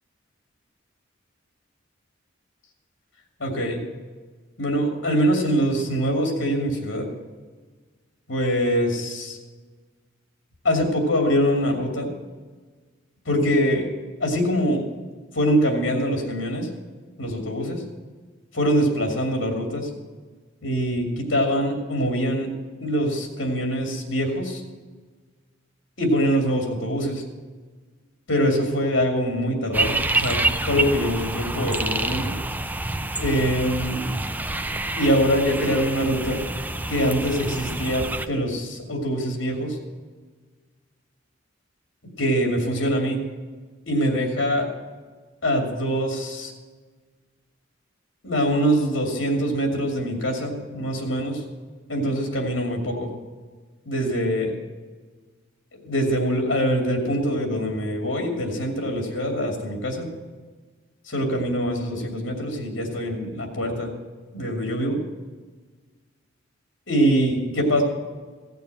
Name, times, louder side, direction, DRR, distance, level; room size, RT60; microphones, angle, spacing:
voice 1, 3.4-3.8 4.6-7.1 8.3-9.4 10.6-12.1 13.3-13.9 14.2-14.8 15.3-16.7 17.2-17.8 18.5-19.9 20.6-22.5 22.8-24.6 26.0-27.2 28.3-32.3 33.2-34.1 35.0-36.4 36.9-39.8 42.2-43.2 43.9-44.7 45.4-46.5 48.2-51.4 51.9-53.1 53.9-54.5 55.7-60.1 61.1-63.9 64.3-65.0 66.9-67.8, equal, 70° left, 2 dB, 2.6 m, -24 dB
sound 1, 29.7-38.3, right 2 dB, 10° right, 0.5 m, -27 dB
15.5 x 6.9 x 7.7 m, 1.4 s
head